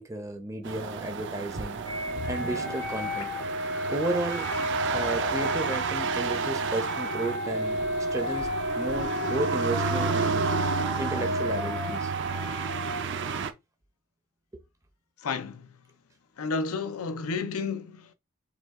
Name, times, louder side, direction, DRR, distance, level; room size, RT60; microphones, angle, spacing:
voice 1, 0.0-1.8 2.3-3.3 3.9-4.5 4.9-10.5 11.0-12.1, right 2 dB, 15° right, 0.6 m, -33 dB
sound 1, 0.6-13.5, right 6 dB, 60° right, 0.5 m, -31 dB
sound 2, 1.6-4.0 4.6-4.7 5.3-5.4, left 1 dB, 85° right, 1.7 m, -41 dB
sound 3, 1.8-13.0, left 1 dB, 70° left, 1.5 m, -32 dB
voice 2, 15.2-15.8 16.4-18.1, left 4 dB, 85° left, 0.6 m, -31 dB
5.0 x 2.3 x 3.6 m
head